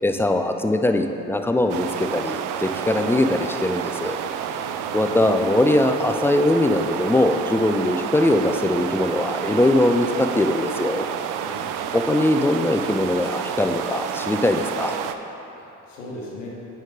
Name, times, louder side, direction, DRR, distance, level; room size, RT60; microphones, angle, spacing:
voice 1, 0.0-4.2 4.9-11.1 11.9-15.0, left 1 dB, 5° left, 6 dB, 0.4 m, -21 dB
sound 1, 1.7-15.1, right 8 dB, 60° right, 0.5 m, -29 dB
voice 2, 4.5-5.4 11.4-11.9 15.6-16.5, left 1 dB, 90° left, -3 dB, 1.0 m, -39 dB
9.1 x 3.3 x 5.0 m, 2.9 s
hypercardioid pair, 50°, 37 cm